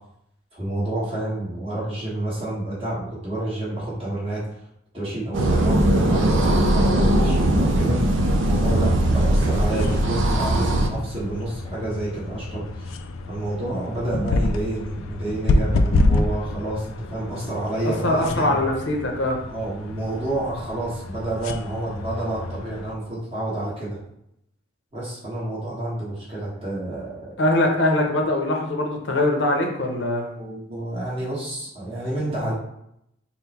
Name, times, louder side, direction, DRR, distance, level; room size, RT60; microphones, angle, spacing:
voice 1, 0.5-4.4 4.9-8.0 8.5-12.9 13.3-18.6 19.5-24.0 24.9-27.3 30.4-32.5, right 1 dB, 30° right, -7 dB, 1.4 m, -29 dB
sound 1, 5.3-10.9, right 1 dB, 65° right, 0.5 m, -19 dB
sound 2, 9.3-22.9, left 2 dB, 85° left, 0.3 m, -28 dB
voice 2, 17.8-19.4 27.4-30.3, left 1 dB, 60° left, 2 dB, 0.7 m, -22 dB
3.8 x 2.1 x 4.2 m, 0.77 s
head